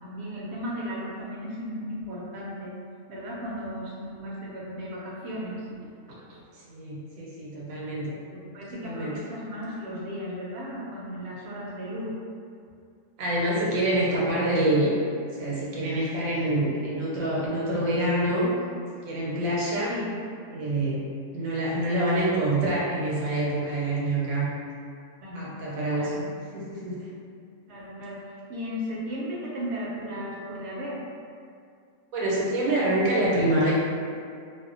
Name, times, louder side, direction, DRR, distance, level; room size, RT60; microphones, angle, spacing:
voice 1, 0.0-2.7 3.1-6.4 8.5-12.2 19.9-20.1 25.2-25.5 25.9-26.2 27.7-28.2 28.5-31.0, equal, 65° right, -5 dB, 0.7 m, -35 dB
voice 2, 6.5-8.1 8.7-9.2 13.2-15.0 15.3-18.5 19.0-19.9 20.5-21.0 21.3-24.5 25.3-26.3 26.5-27.1 32.1-33.7, right 1 dB, 85° right, -6 dB, 1.1 m, -26 dB
2.5 x 2.1 x 2.4 m, 2.3 s
omnidirectional pair, 1.4 m